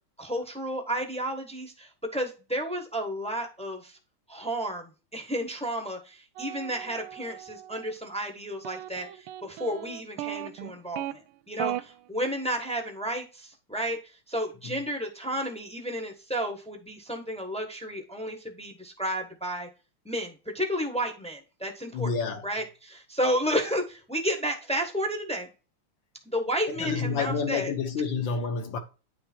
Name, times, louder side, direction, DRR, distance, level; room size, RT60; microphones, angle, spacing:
voice 1, 0.2-3.9 4.3-9.1 9.4-11.2 11.5-11.7 12.1-14.0 14.3-19.7 20.0-22.1 22.4-25.5 26.3-27.7, equal, 5° left, 0.9 m, -32 dB
sound 1, 6.4-7.9 8.6-11.1 11.6-11.8, right 13 dB, 85° right, 1.5 m, -37 dB
voice 2, 21.9-22.4 26.7-28.8, left 5 dB, 65° left, 1.8 m, -29 dB
9.8 x 3.4 x 4.4 m
omnidirectional pair, 2.4 m